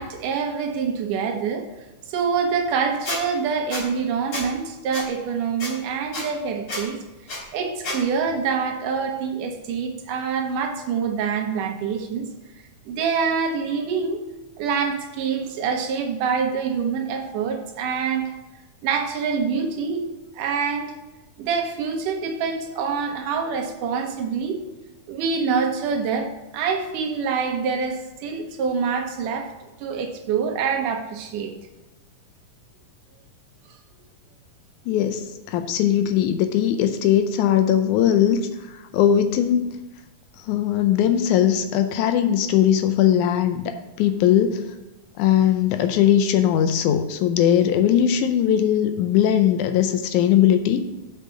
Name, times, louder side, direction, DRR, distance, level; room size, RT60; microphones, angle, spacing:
voice 1, 0.0-1.7 2.1-7.0 7.5-12.3 12.9-14.2 14.6-18.3 18.8-20.1 20.3-21.0 21.4-24.6 25.1-29.5 29.8-31.5, right 6 dB, 80° right, 5 dB, 2.5 m, -25 dB
Squeak, 3.0-3.2 3.7-3.8 4.3-4.5 4.9-5.0 5.6-5.7 6.1-6.2 6.7-6.8 7.3-7.4 7.8-8.0, left 2 dB, 35° left, 2.8 m, -29 dB
voice 2, 34.9-38.5 38.9-39.8 40.5-44.7 45.2-50.9, left 10 dB, 80° left, 8 dB, 1.9 m, -20 dB
7.3 x 5.4 x 6.6 m, 1.0 s
omnidirectional pair, 3.7 m